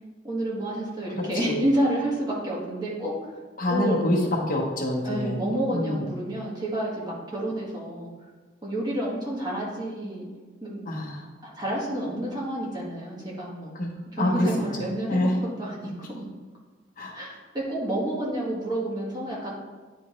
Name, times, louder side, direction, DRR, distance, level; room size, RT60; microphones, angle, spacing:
voice 1, 0.2-3.1 3.7-4.0 5.0-8.1 8.6-10.3 10.6-10.8 11.4-13.8 14.1-16.3 17.1-19.6, right 1 dB, 25° right, -5 dB, 1.5 m, -29 dB
voice 2, 1.1-1.6 3.6-5.4 5.7-6.1 10.9-11.2 13.7-14.5 15.1-15.3 17.0-17.2, left 1 dB, 50° left, -2 dB, 1.0 m, -26 dB
9.5 x 3.5 x 3.1 m, 1.4 s
head